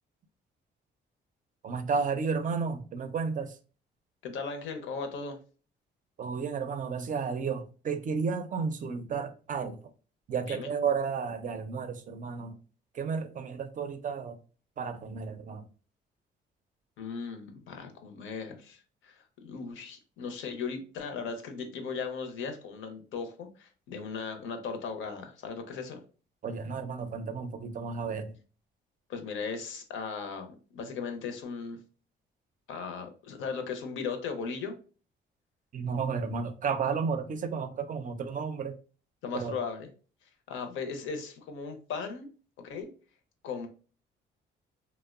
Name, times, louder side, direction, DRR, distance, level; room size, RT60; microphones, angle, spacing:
voice 1, 1.6-3.6 6.2-9.8 10.3-12.6 12.9-14.4 14.8-15.6 26.4-28.3 35.7-38.8 39.3-39.6, right 5 dB, 40° right, 0.4 m, -32 dB
voice 2, 4.2-5.4 10.5-10.7 17.0-26.0 29.1-31.8 32.7-34.7 39.2-39.9 40.5-42.3 42.6-42.9 43.4-43.7, left 5 dB, 80° left, 0.6 m, -37 dB
2.8 x 2.0 x 2.3 m
cardioid pair, 90°, 20 cm